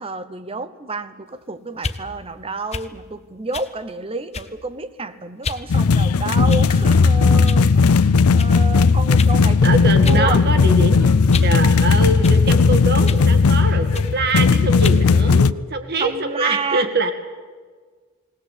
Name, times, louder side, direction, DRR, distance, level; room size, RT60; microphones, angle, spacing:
voice 1, 0.0-10.4 16.0-16.9, right 3 dB, 25° right, 12 dB, 0.9 m, -29 dB
sound 1, 1.7-2.0 2.7-2.9 3.5-3.7 4.3-4.6 5.4-5.7 6.5-6.9 7.5-7.7 8.4-8.5 9.2-9.4 10.0-10.3 10.6-11.6 12.2-12.4 13.1-13.3 13.9-14.1 14.8-15.0, left 4 dB, 30° left, 0.8 m, -30 dB
sound 2, 5.7-15.5, left 4 dB, 90° left, 0.5 m, -15 dB
voice 2, 9.6-17.1, right 2 dB, 45° right, 8 dB, 1.9 m, -24 dB
20.0 x 18.5 x 8.3 m, 1.5 s
head